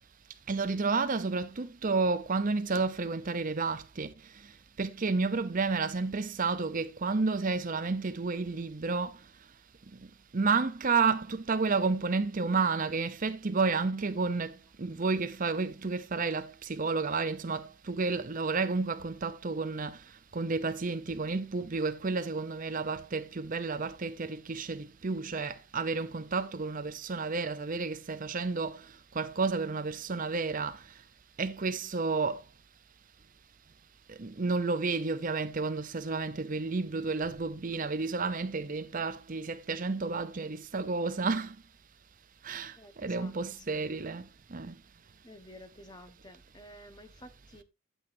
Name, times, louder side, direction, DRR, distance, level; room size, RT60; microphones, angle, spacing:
voice 1, 0.5-4.1 4.8-9.2 10.3-20.0 20.3-28.9 29.1-30.8 31.4-32.4 34.1-41.5 42.4-44.7, right 4 dB, 40° right, 0.6 m, -31 dB
voice 2, 42.7-43.9 45.2-47.6, left 1 dB, 20° left, 1.2 m, -52 dB
12.0 x 8.0 x 2.7 m
head